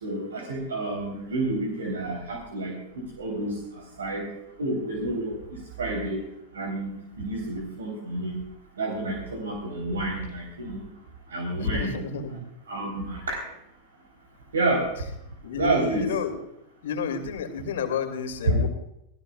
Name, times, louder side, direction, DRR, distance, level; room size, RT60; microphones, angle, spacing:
voice 1, 0.0-4.3 4.6-6.3 6.5-6.9 7.2-8.4 8.8-10.8 11.3-12.0 12.7-13.5 14.5-14.9 15.6-16.1 18.4-18.6, right 2 dB, 70° right, 1 dB, 3.5 m, -29 dB
voice 2, 11.6-12.4 15.4-16.4 16.8-18.7, left 6 dB, 60° left, 6 dB, 2.5 m, -30 dB
25.0 x 17.5 x 2.4 m, 0.80 s
figure-of-eight pair, 90°, 0 cm